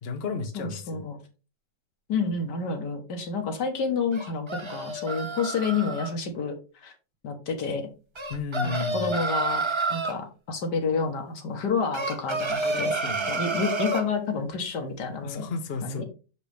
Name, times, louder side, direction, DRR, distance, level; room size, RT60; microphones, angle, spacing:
voice 1, 0.0-1.1 8.3-9.1 12.6-13.3 15.2-16.0, left 4 dB, 45° left, 0.8 m, -33 dB
voice 2, 0.5-1.2 2.1-6.5 6.8-6.9 7.2-7.9 8.6-9.6 9.9-12.9 13.3-15.5 15.8-16.0, left 5 dB, 70° left, 1.8 m, -29 dB
sound 1, 4.1-6.1 8.1-10.2 11.9-14.1, right 3 dB, 45° right, 0.4 m, -29 dB
6.5 x 5.3 x 3.3 m
omnidirectional pair, 1.9 m